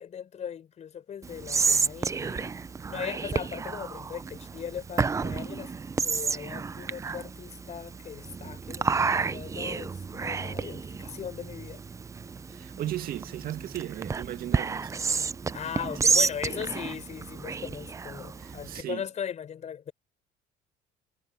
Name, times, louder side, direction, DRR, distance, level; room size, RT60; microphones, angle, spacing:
voice 1, 0.0-2.6 2.9-5.7 6.0-11.8 15.5-19.9, left 8 dB, 40° left, 5.4 m, -38 dB
Whispering, 1.2-18.8, right 5 dB, 15° right, 0.5 m, -31 dB
voice 2, 12.5-14.9 18.4-19.0, right 13 dB, 55° right, 2.2 m, -36 dB
cardioid pair, 130°, 18 cm